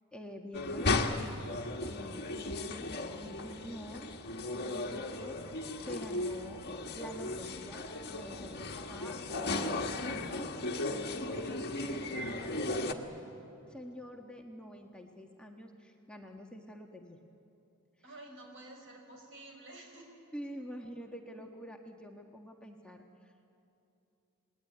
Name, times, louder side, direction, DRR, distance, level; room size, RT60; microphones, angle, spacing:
voice 1, 0.1-2.8 3.1-4.1 4.5-5.4 5.8-6.6 6.9-10.5 10.9-13.1 13.7-17.2 20.3-23.3, equal, 5° left, 1 dB, 1.3 m, -47 dB
sound 1, 0.5-12.9, left 2 dB, 50° left, 1.6 m, -36 dB
voice 2, 18.0-20.1, right 2 dB, 60° right, 2 dB, 5.5 m, -50 dB
28.0 x 20.0 x 9.8 m, 2.8 s
head